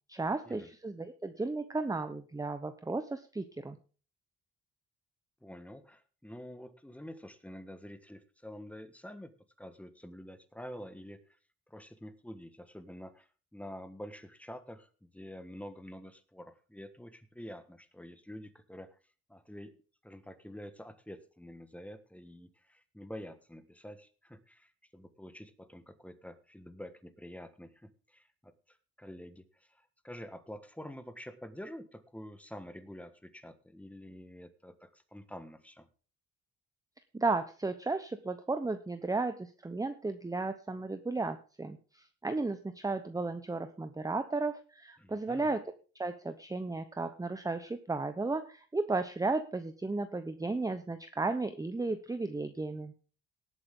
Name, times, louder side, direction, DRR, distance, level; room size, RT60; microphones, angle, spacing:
voice 1, 0.1-3.8 37.1-45.6 45.9-52.9, right 3 dB, 10° right, 9 dB, 0.8 m, -34 dB
voice 2, 5.4-11.2 11.7-19.0 19.3-19.8 20.0-35.9 45.0-45.5, equal, 5° left, 10 dB, 1.4 m, -48 dB
18.5 x 8.1 x 3.7 m, 0.37 s
cardioid pair, 90°, 30 cm